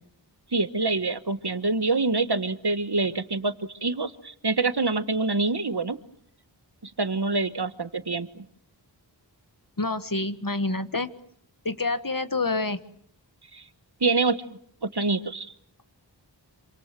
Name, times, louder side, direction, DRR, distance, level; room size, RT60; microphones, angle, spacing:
voice 1, 0.5-3.5 3.8-6.0 7.0-8.4 13.5-13.6 14.0-14.4 14.9-15.5, right 3 dB, 60° right, 12 dB, 1.5 m, -26 dB
voice 2, 9.8-11.1 11.7-12.8, left 3 dB, 50° left, 12 dB, 1.7 m, -27 dB
27.0 x 26.0 x 7.6 m, 0.63 s
wide cardioid pair, 40°, 44 cm